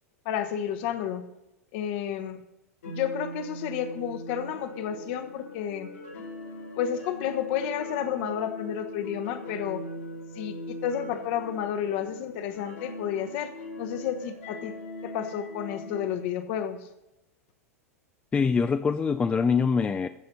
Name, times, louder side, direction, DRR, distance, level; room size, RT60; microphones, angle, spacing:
voice 1, 0.2-1.2 1.7-2.4 2.8-5.9 6.7-9.8 10.3-14.7 15.0-16.9, left 9 dB, 50° left, 9 dB, 1.3 m, -31 dB
sound 1, 2.8-16.1, left 1 dB, 65° left, 3.0 m, -40 dB
voice 2, 18.3-20.1, left 5 dB, 15° left, 11 dB, 0.4 m, -24 dB
14.5 x 6.6 x 5.5 m, 0.93 s
figure-of-eight pair, 90°, 8 cm